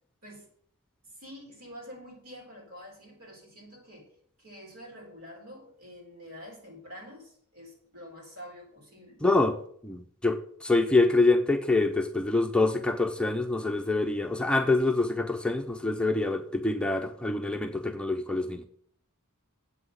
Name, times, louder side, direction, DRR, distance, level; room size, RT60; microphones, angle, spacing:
voice 1, 1.0-4.1 4.4-9.3, equal, 75° right, -1 dB, 4.6 m, -47 dB
voice 2, 9.2-9.6 9.8-18.7, left 2 dB, 5° left, 4 dB, 0.6 m, -26 dB
8.0 x 6.0 x 7.8 m, 0.62 s
head